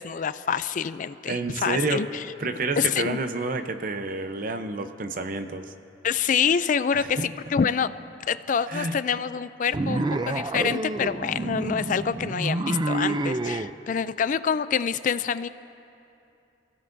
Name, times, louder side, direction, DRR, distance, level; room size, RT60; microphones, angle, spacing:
voice 1, 0.0-2.2 2.8-3.2 6.0-7.9 8.3-15.5, left 7 dB, 45° left, 14 dB, 0.4 m, -26 dB
voice 2, 1.3-2.1 2.4-5.7 6.9-7.3 8.7-9.0, right 3 dB, 50° right, 8 dB, 0.8 m, -29 dB
sound 1, 9.7-13.7, right 2 dB, 25° right, 0.4 m, -28 dB
27.5 x 16.0 x 2.7 m, 2.7 s
head